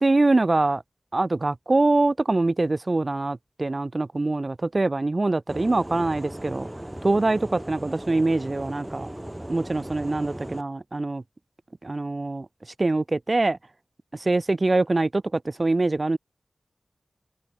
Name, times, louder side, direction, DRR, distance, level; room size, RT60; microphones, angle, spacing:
voice 1, 0.0-0.8 1.1-6.7 7.0-9.1 9.5-11.2 11.8-12.5 12.8-13.6 14.1-16.2, right 2 dB, 50° right, 0.4 m, -24 dB
sound 1, 5.5-10.6, right 1 dB, 20° right, 1.6 m, -37 dB
wide cardioid pair, 50°, 0 cm